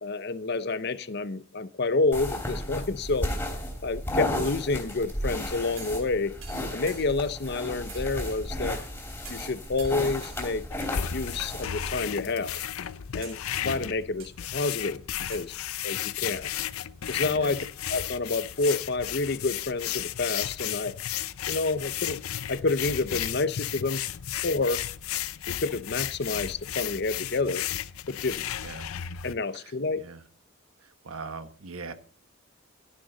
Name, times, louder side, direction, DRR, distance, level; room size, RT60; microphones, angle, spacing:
voice 1, 0.0-3.3 3.8-6.3 6.7-8.8 9.3-10.7 11.1-12.6 13.1-15.0 15.3-15.5 15.8-16.5 17.1-17.6 17.9-20.9 21.5-22.2 22.5-24.0 24.4-24.8 25.5-27.6 28.1-28.5 29.2-30.0, left 3 dB, 50° left, 14 dB, 0.7 m, -29 dB
sound 1, 2.1-12.0, left 1 dB, 10° left, 3.0 m, -34 dB
sound 2, 5.8-6.1 6.4-7.4 7.9-8.8 9.3-9.5 9.8-10.4 10.8-11.3 12.0-12.1 12.6-12.9 13.2-13.7 14.2-14.7 15.3-16.6 17.0-17.1, right 7 dB, 70° right, 3.3 m, -49 dB
sound 3, 10.7-29.3, left 11 dB, 85° left, 0.6 m, -34 dB
voice 2, 13.6-14.0 17.3-17.7 28.6-28.9 29.5-30.2 30.8-31.9, right 4 dB, 90° right, 10 dB, 1.2 m, -41 dB
13.0 x 10.0 x 4.0 m, 0.40 s
head